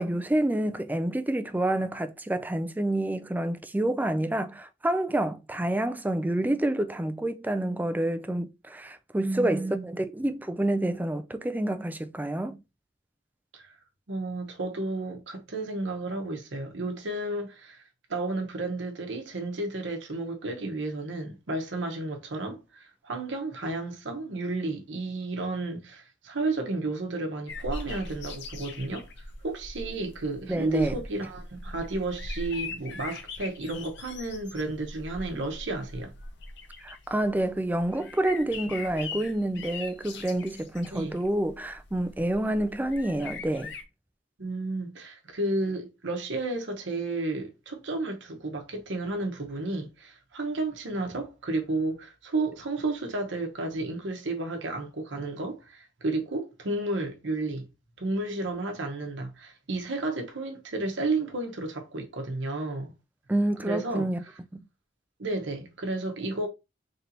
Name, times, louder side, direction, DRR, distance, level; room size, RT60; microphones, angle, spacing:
voice 1, 0.0-12.6 30.5-31.0 36.8-43.7 63.3-64.2 64.5-64.6, right 1 dB, 10° right, 0.3 m, -28 dB
voice 2, 9.2-9.9 13.5-13.7 14.1-17.8 18.1-29.1 29.4-36.1 40.9-41.2 44.4-57.7 58.0-62.9 63.6-64.1 65.2-66.5, right 2 dB, 65° right, 0.9 m, -32 dB
sound 1, 27.5-43.8, left 3 dB, 60° left, 0.7 m, -41 dB
3.3 x 2.8 x 3.9 m
head